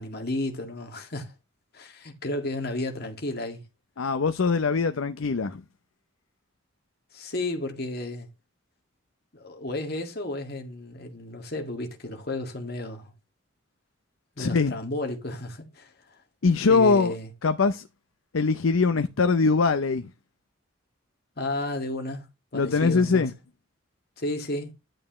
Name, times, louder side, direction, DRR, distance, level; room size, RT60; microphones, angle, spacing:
voice 1, 0.0-1.3 1.7-3.6 7.1-8.3 9.3-13.1 14.4-15.9 16.7-17.3 21.4-22.3 22.5-23.3 24.2-24.7, left 2 dB, 50° left, 2.0 m, -32 dB
voice 2, 4.0-5.6 14.4-14.7 16.4-17.1 17.4-17.9 18.3-20.1 22.5-23.3, left 4 dB, 90° left, 0.6 m, -22 dB
11.0 x 8.8 x 3.1 m
head